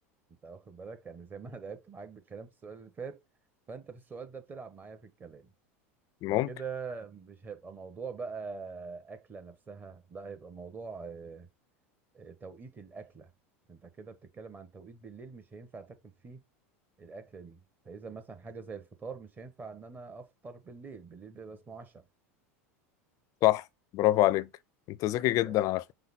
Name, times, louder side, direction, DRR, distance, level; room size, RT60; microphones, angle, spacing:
voice 1, 0.4-3.2 3.7-5.5 6.3-11.5 12.1-13.3 13.7-16.4 17.0-22.0 25.4-25.5, right 5 dB, 25° right, 1.2 m, -44 dB
voice 2, 23.9-24.5 24.9-25.8, left 16 dB, 50° left, 0.4 m, -25 dB
5.7 x 2.1 x 4.1 m
hypercardioid pair, 95°, 8 cm